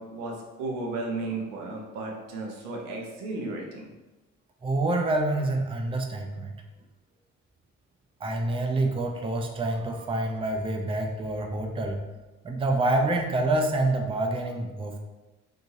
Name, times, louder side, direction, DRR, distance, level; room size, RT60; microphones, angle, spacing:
voice 1, 0.0-3.9, right 2 dB, 85° right, 0 dB, 0.6 m, -34 dB
voice 2, 4.6-6.5 8.2-12.0 12.4-15.0, right 2 dB, 15° right, 2 dB, 0.5 m, -27 dB
2.9 x 2.6 x 2.6 m, 1.1 s
hypercardioid pair, 45°, 36 cm